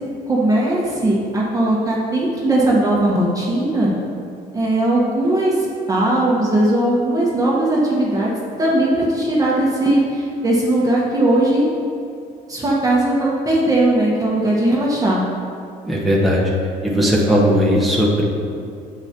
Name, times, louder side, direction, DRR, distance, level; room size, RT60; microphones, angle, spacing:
voice 1, 0.3-3.9 4.5-8.3 8.6-11.7 12.5-15.2, right 1 dB, 20° right, -5 dB, 1.4 m, -18 dB
voice 2, 15.8-16.4 16.8-18.2, equal, ahead, -5 dB, 1.4 m, -17 dB
8.9 x 8.1 x 3.0 m, 2.5 s
cardioid pair, 110°, 17 cm